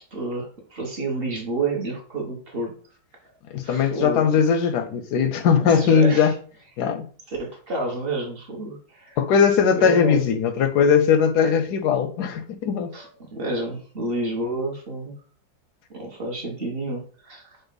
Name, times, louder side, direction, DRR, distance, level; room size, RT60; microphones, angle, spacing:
voice 1, 0.1-2.7 3.6-4.4 5.6-6.3 7.3-9.2 9.8-10.2 12.9-15.1 15.9-17.6, right 2 dB, 40° right, 0.9 m, -29 dB
voice 2, 3.5-6.3 6.8-7.1 9.2-12.9, left 6 dB, 70° left, 1.0 m, -19 dB
5.3 x 2.3 x 3.9 m
omnidirectional pair, 2.1 m